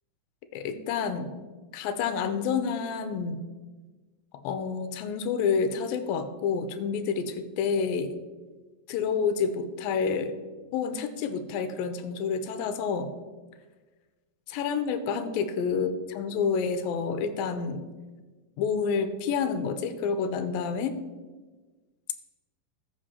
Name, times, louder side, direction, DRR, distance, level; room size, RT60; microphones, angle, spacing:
voice 1, 0.5-1.3 1.7-3.4 4.4-8.1 8.9-10.4 10.7-13.1 14.5-17.8 18.6-21.0, left 6 dB, 85° left, 10 dB, 2.4 m, -29 dB
14.0 x 5.4 x 4.3 m, 1.3 s
omnidirectional pair, 4.2 m